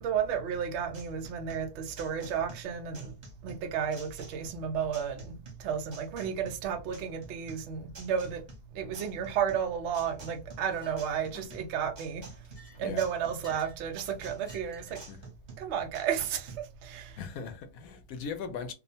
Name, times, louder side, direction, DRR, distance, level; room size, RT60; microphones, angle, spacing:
voice 1, 0.0-3.1 3.4-8.4 8.7-12.2 12.8-15.0 15.6-16.5 16.8-17.2, right 8 dB, 75° right, 0.6 m, -32 dB
sound 1, 0.5-16.6, right 3 dB, 40° right, 0.7 m, -50 dB
Chink clink, 10.7-11.0 11.3-11.8 12.3-13.8 14.4-15.1, right 1 dB, 40° left, 0.4 m, -54 dB
voice 2, 17.2-18.7, left 6 dB, 70° left, 0.9 m, -39 dB
2.7 x 2.1 x 2.7 m
omnidirectional pair, 1.7 m